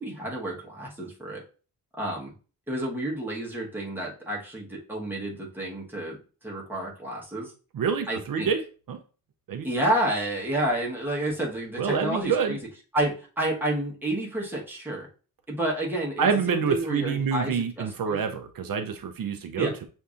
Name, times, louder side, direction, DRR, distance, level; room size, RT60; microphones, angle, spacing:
voice 1, 0.0-1.4 2.0-2.3 2.7-7.5 8.1-8.5 9.6-12.6 12.9-15.1 15.5-18.2 19.6-19.7, right 1 dB, 5° right, -4 dB, 1.1 m, -30 dB
voice 2, 7.7-8.6 8.9-9.0 9.5-9.8 11.8-12.6 16.2-19.9, right 6 dB, 70° right, 6 dB, 0.5 m, -27 dB
6.7 x 2.6 x 2.4 m, 0.37 s
wide cardioid pair, 165°, 36 cm